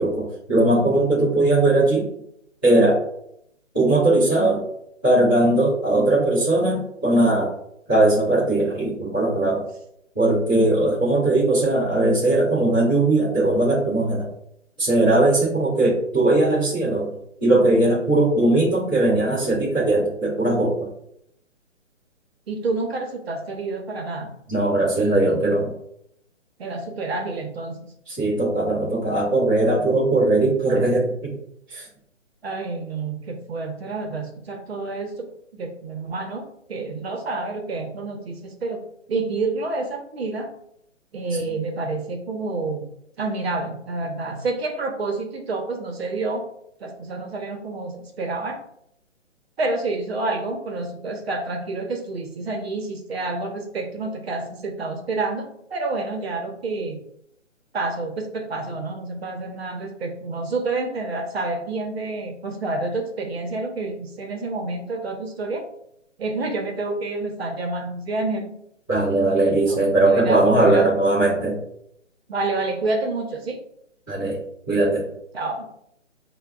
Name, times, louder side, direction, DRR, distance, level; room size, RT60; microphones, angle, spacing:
voice 1, 0.0-2.1 2.6-3.0 3.7-4.6 5.0-7.5 7.9-9.6 10.1-14.3 14.8-17.1 17.4-20.9 24.5-25.7 28.1-31.3 31.7-31.9 68.9-71.6 74.1-74.4 74.7-75.0, right 2 dB, 10° left, -14 dB, 0.4 m, -19 dB
voice 2, 22.5-24.3 26.6-27.8 32.4-38.8 39.1-40.5 41.1-42.9 43.2-46.4 46.8-48.6 49.6-57.0 57.7-65.6 66.2-68.5 69.7-69.8 70.1-70.9 72.3-73.6 75.3-75.7, right 3 dB, 55° right, 3 dB, 0.8 m, -28 dB
5.8 x 2.2 x 2.2 m, 0.74 s
hypercardioid pair, 155°, 38 cm